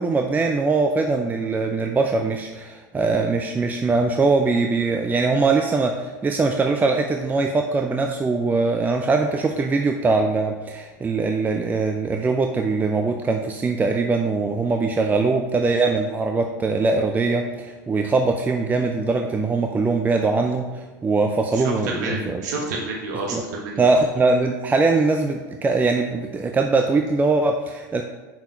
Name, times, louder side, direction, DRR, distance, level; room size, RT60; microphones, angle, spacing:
voice 1, 0.0-22.4 23.3-23.4 23.8-28.0, right 3 dB, 15° right, 4 dB, 0.4 m, -22 dB
voice 2, 21.6-23.8, right 2 dB, 75° right, -1 dB, 1.3 m, -29 dB
5.5 x 4.9 x 4.5 m, 1.3 s
hypercardioid pair, 95°, 10 cm